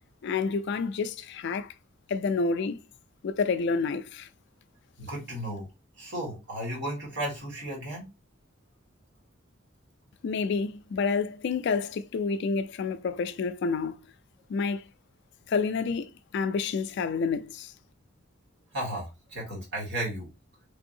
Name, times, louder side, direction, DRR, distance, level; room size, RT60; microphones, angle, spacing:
voice 1, 0.2-1.7 2.1-2.8 3.2-4.3 10.2-14.0 14.5-14.9 15.5-17.7, left 4 dB, 60° left, 0.3 m, -29 dB
voice 2, 5.0-5.7 6.0-8.1 18.7-20.3, right 1 dB, 60° right, 1.8 m, -34 dB
3.5 x 2.6 x 2.6 m
head